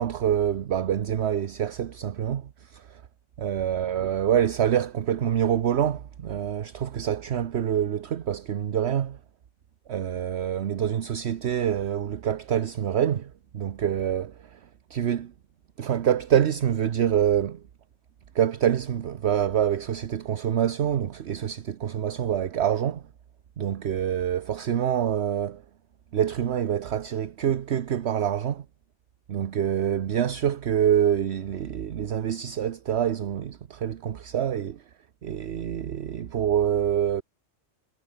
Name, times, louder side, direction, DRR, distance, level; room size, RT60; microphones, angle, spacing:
voice 1, 0.0-3.0 3.4-9.2 9.9-14.6 14.9-15.3 15.8-17.6 18.3-23.0 23.6-25.6 26.1-28.6 29.3-34.8 35.2-37.2, right 9 dB, 65° right, 1.1 m, -26 dB
omnidirectional pair, 1.3 m